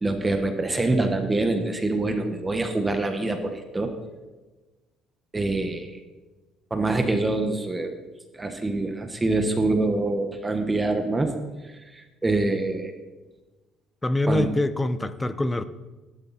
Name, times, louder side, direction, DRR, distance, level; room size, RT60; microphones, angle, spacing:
voice 1, 0.0-4.0 5.3-5.9 6.7-7.9 8.3-11.3 11.9-12.9 14.3-14.5, right 2 dB, 15° right, 6 dB, 1.5 m, -25 dB
voice 2, 14.0-15.6, left 2 dB, 15° left, 13 dB, 0.8 m, -24 dB
16.5 x 12.0 x 4.4 m, 1.2 s
cardioid pair, 115°, 0 cm